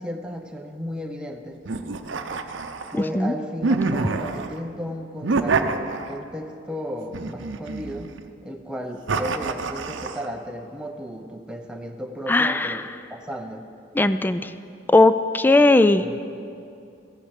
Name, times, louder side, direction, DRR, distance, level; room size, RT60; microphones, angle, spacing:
voice 1, 0.0-1.6 2.9-8.1 8.4-13.7 16.0-16.2, equal, 5° right, 3 dB, 0.7 m, -34 dB
sound 1, 1.7-3.0 3.6-4.6 5.2-6.4 7.1-8.2 9.1-10.3, right 3 dB, 85° right, 0.7 m, -27 dB
voice 2, 12.3-12.8 14.0-14.5 14.9-16.2, left 2 dB, 10° left, 12 dB, 0.3 m, -18 dB
14.5 x 8.4 x 7.3 m, 2.5 s
head